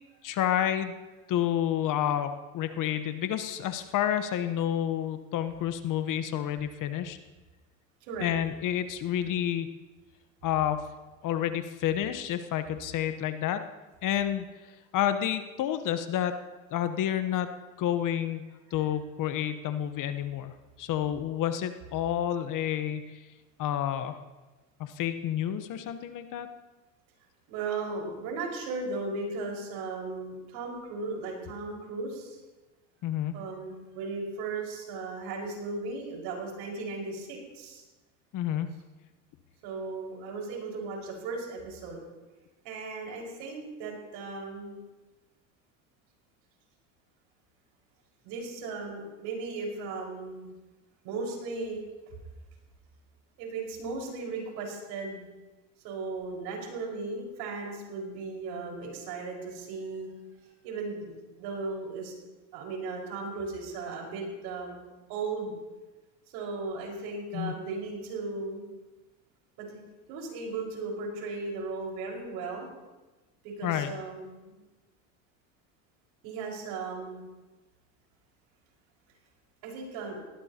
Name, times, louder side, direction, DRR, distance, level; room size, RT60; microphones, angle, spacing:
voice 1, 0.2-0.9 1.3-7.2 8.2-9.7 10.4-10.9 11.2-13.7 14.0-14.5 14.9-16.4 16.7-17.5 17.8-18.4 18.7-23.2 23.6-24.2 24.8-26.5 33.0-33.4 38.3-38.7 67.3-67.5 73.6-73.9, left 10 dB, 45° left, 9 dB, 1.1 m, -29 dB
voice 2, 27.5-32.4 33.3-37.8 39.6-42.0 42.6-44.8 48.2-50.5 51.0-51.8 53.4-55.2 55.8-60.1 60.6-62.1 62.5-64.8 65.1-65.6 66.3-68.7 69.6-69.8 70.1-72.7 73.4-74.5 76.2-77.2 79.6-80.2, right 3 dB, 65° right, -1 dB, 5.4 m, -36 dB
19.0 x 16.5 x 2.9 m, 1.2 s
supercardioid pair, 100°, 44 cm